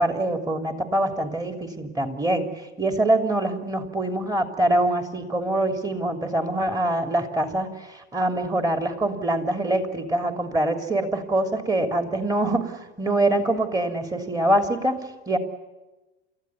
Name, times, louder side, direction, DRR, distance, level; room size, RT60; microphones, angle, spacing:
voice 1, 0.0-2.5 2.8-15.0 15.3-15.4, right 1 dB, 10° right, 6 dB, 3.2 m, -24 dB
29.5 x 14.5 x 9.4 m, 1.1 s
hypercardioid pair, 80°, 33 cm